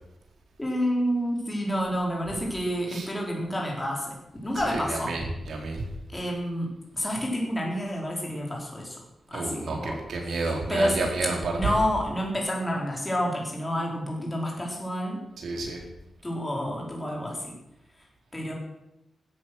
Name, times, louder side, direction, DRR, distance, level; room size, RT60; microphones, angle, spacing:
voice 1, 0.6-4.1 4.4-5.1 6.1-9.0 9.3-10.0 10.7-11.1 11.5-15.2 16.2-17.5 18.3-18.5, equal, 15° left, -1 dB, 4.6 m, -29 dB
voice 2, 4.7-5.9 9.3-11.7 15.4-15.8, right 3 dB, 75° right, 2 dB, 4.5 m, -30 dB
16.0 x 13.0 x 6.4 m, 0.89 s
wide cardioid pair, 160°, 0 cm